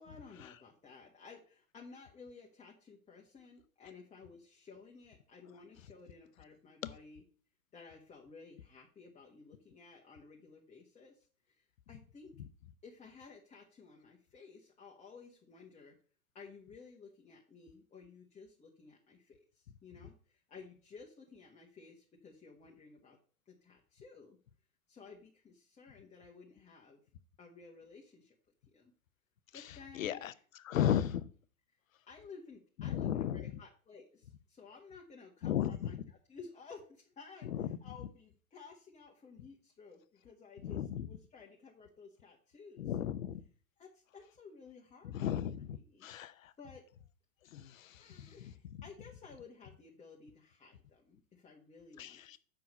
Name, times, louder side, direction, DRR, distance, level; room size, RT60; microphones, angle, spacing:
voice 1, 0.0-7.2 7.7-12.4 12.8-16.0 16.3-23.2 23.5-24.4 24.9-27.0 27.4-28.3 28.7-28.9 29.5-30.4 32.1-43.2 43.8-46.1 46.6-46.8 48.0-52.4, left 4 dB, 15° left, 1.3 m, -55 dB
voice 2, 30.0-30.3 30.6-31.2 32.8-33.4 35.4-36.0 37.4-37.7 40.6-41.1 42.8-43.4 45.0-46.5 47.5-48.5 52.0-52.4, left 10 dB, 65° left, 0.8 m, -35 dB
7.7 x 5.8 x 5.3 m
figure-of-eight pair, 95°, 43 cm